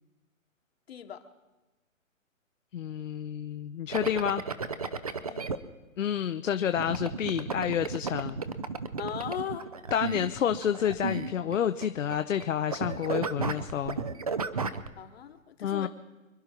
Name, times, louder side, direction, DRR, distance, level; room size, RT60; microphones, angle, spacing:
voice 1, 0.9-1.3 5.1-5.5 9.0-9.7 15.0-15.9, left 8 dB, 50° left, 7 dB, 1.3 m, -38 dB
voice 2, 2.7-4.4 6.0-8.4 9.9-14.0 15.6-15.9, left 9 dB, 65° left, 8 dB, 0.8 m, -29 dB
sound 1, 3.9-5.6 6.8-12.4 12.7-14.9, right 4 dB, 30° right, 0.5 m, -33 dB
26.0 x 10.5 x 4.5 m, 1.1 s
hypercardioid pair, 155°, 41 cm